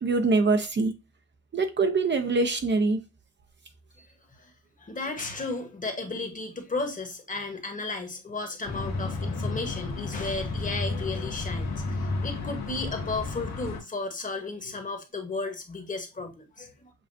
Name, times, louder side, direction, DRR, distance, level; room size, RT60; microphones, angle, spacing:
voice 1, 0.0-0.9 1.5-3.0, right 3 dB, 35° right, 0.7 m, -24 dB
voice 2, 4.0-4.5 4.8-16.9, left 3 dB, 25° left, 1.2 m, -34 dB
sound 1, 8.6-13.8, left 3 dB, 65° left, 1.5 m, -32 dB
7.3 x 2.4 x 2.6 m
cardioid pair, 90°, 30 cm